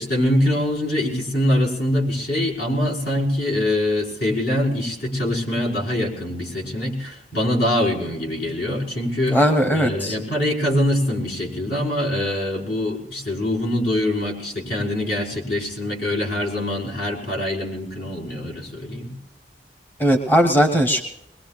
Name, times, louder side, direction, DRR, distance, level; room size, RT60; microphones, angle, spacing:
voice 1, 0.0-9.4 9.7-19.1, left 1 dB, 60° left, -1 dB, 5.0 m, -24 dB
voice 2, 9.3-10.2 20.0-21.0, equal, 10° left, 4 dB, 1.1 m, -18 dB
22.0 x 21.5 x 2.5 m, 0.81 s
head